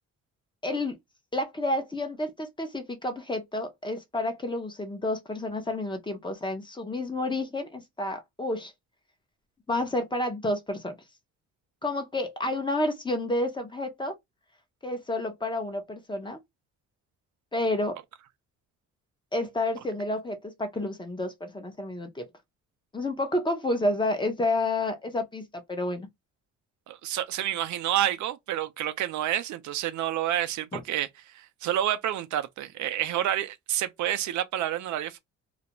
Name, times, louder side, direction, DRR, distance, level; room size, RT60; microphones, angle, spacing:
voice 1, 0.6-0.9 1.3-8.7 9.7-11.0 11.8-14.1 14.8-16.4 17.5-18.0 19.3-22.3 22.9-26.1 30.7-30.8, left 1 dB, 15° left, 0.7 m, -30 dB
voice 2, 26.9-31.1 31.4-35.2, right 12 dB, 70° right, 0.5 m, -29 dB
2.4 x 2.1 x 2.9 m
cardioid pair, 90°, 30 cm